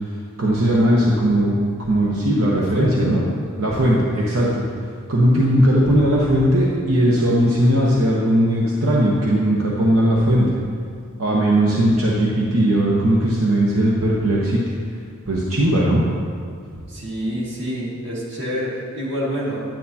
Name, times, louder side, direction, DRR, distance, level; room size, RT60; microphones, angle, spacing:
voice 1, 0.4-3.2 3.6-4.6 5.1-10.5 11.2-14.6 15.3-16.0, right 1 dB, 80° right, -4 dB, 1.0 m, -18 dB
voice 2, 2.5-3.1 11.7-11.9 16.9-19.6, equal, 55° right, -5 dB, 2.1 m, -28 dB
10.0 x 9.0 x 2.8 m, 2.2 s
head